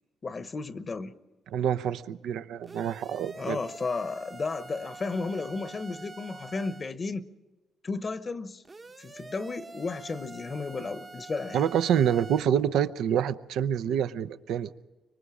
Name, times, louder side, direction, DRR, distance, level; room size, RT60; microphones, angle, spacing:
voice 1, 0.2-1.1 3.4-7.2 7.8-8.6 9.0-11.7, left 4 dB, 35° left, 1.0 m, -33 dB
voice 2, 1.5-3.6 11.5-14.7, right 9 dB, 80° right, 0.7 m, -27 dB
sound 1, 2.6-7.0 8.7-12.4, right 3 dB, 30° right, 0.9 m, -46 dB
25.5 x 23.0 x 4.9 m
cardioid pair, 90°, 0 cm